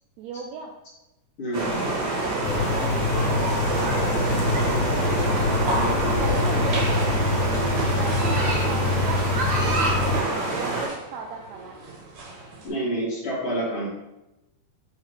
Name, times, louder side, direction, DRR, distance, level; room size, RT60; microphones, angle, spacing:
voice 1, 0.2-0.7 2.2-3.4 3.8-5.1 6.0-7.1 8.0-9.3 9.6-11.8, right 5 dB, 90° right, 1 dB, 1.5 m, -37 dB
voice 2, 1.4-1.7 5.7-6.3 12.6-13.9, right 1 dB, 45° left, -7 dB, 2.9 m, -28 dB
sound 1, 1.5-10.9, right 2 dB, 40° right, 2.1 m, -26 dB
sound 2, 2.4-10.2, left 3 dB, 75° left, 2.1 m, -25 dB
sound 3, 5.0-12.7, right 2 dB, 60° right, 2.6 m, -34 dB
10.5 x 3.9 x 3.1 m, 0.95 s
omnidirectional pair, 3.9 m